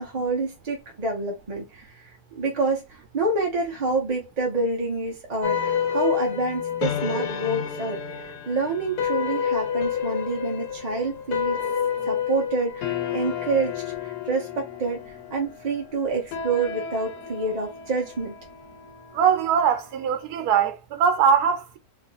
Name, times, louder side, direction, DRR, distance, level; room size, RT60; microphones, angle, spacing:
voice 1, 0.0-11.6 12.0-18.4, right 3 dB, 40° right, 0.6 m, -28 dB
sound 1, 5.4-19.9, left 8 dB, 90° left, 1.3 m, -30 dB
voice 2, 19.1-21.8, right 7 dB, 85° right, 1.2 m, -21 dB
3.0 x 2.5 x 3.8 m
omnidirectional pair, 1.6 m